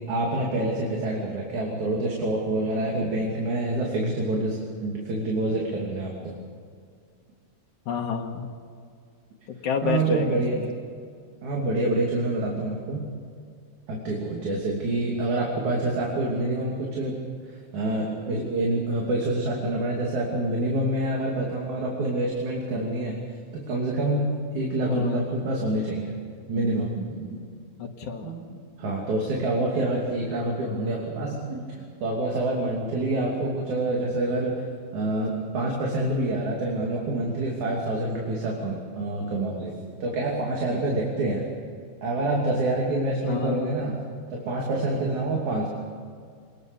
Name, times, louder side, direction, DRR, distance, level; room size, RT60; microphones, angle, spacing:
voice 1, 0.1-6.3 9.8-10.6 11.4-13.1 13.9-17.2 17.5-23.2 23.5-26.1 26.5-27.4 28.2-34.7 34.9-39.7 40.0-41.4 42.0-44.0 44.3-45.7, right 2 dB, 75° right, -2 dB, 4.3 m, -27 dB
voice 2, 7.9-8.5 9.6-10.7 24.8-25.2 27.8-28.3 43.3-43.7, left 6 dB, 85° left, 0 dB, 2.9 m, -29 dB
26.0 x 20.5 x 7.0 m, 2.2 s
omnidirectional pair, 3.4 m